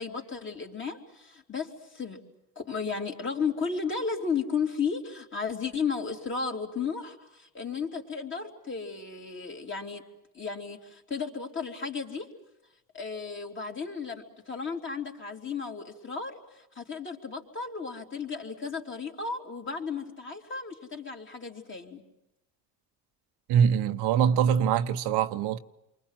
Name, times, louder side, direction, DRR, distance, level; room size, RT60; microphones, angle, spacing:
voice 1, 0.0-2.2 2.6-10.0 10.3-12.3 12.9-22.0, left 5 dB, 30° left, 3.7 m, -34 dB
voice 2, 23.5-25.6, right 8 dB, 75° right, 1.1 m, -23 dB
28.5 x 24.5 x 7.5 m
cardioid pair, 100°, 40 cm